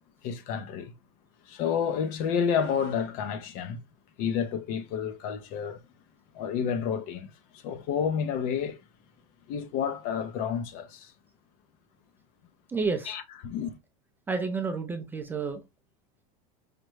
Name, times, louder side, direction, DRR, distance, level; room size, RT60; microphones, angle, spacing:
voice 1, 0.2-0.9 1.5-3.8 4.2-5.8 6.3-8.8 9.5-11.1 13.1-13.7, left 7 dB, 50° left, 0.6 m, -30 dB
voice 2, 12.7-13.1 14.3-15.6, right 4 dB, 10° right, 0.4 m, -30 dB
4.9 x 2.1 x 3.1 m
supercardioid pair, 150°, 19 cm